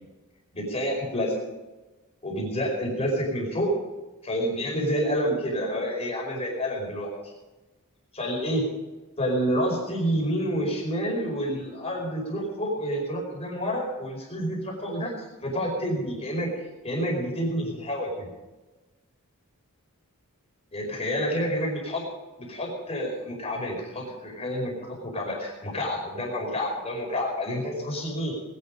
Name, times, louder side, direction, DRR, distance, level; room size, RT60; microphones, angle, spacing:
voice 1, 0.5-1.3 2.2-3.8 4.2-7.1 8.1-8.6 9.2-16.5 16.8-18.3 20.7-22.0 22.4-28.3, equal, 30° left, -1 dB, 5.0 m, -28 dB
19.5 x 11.5 x 5.1 m, 1.1 s
head